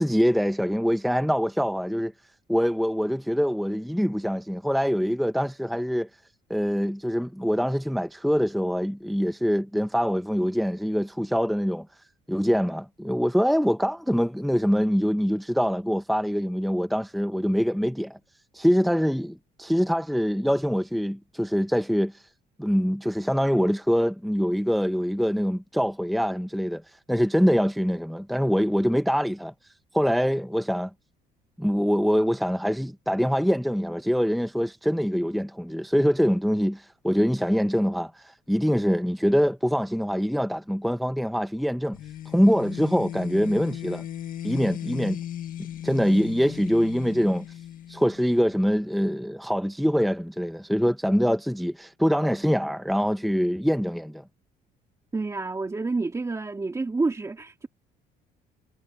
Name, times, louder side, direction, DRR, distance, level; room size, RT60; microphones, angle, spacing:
voice 1, 0.0-2.1 2.5-6.1 6.5-11.9 12.3-18.2 18.5-22.2 22.6-26.8 27.1-29.5 29.9-30.9 31.6-42.0 42.3-44.0 44.4-45.2 45.8-47.5 47.9-54.2, equal, ahead, 0.8 m, -24 dB
sound 1, 41.9-48.6, left 11 dB, 55° left, 1.5 m, -37 dB
voice 2, 55.1-57.7, right 3 dB, 20° right, 2.6 m, -28 dB
cardioid pair, 110°, 17 cm